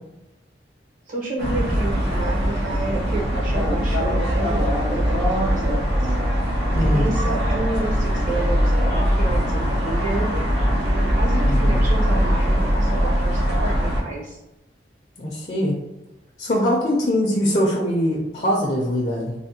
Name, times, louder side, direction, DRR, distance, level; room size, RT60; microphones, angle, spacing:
voice 1, 1.1-6.1 6.4-10.3 10.9-14.4, right 2 dB, 50° right, -3 dB, 0.8 m, -30 dB
sound 1, 1.4-14.0, equal, 85° right, 0.9 m, -21 dB
voice 2, 6.7-7.2 11.5-11.9 15.2-15.8 16.4-19.3, equal, 40° left, -4 dB, 0.5 m, -22 dB
3.3 x 2.1 x 2.7 m, 0.93 s
head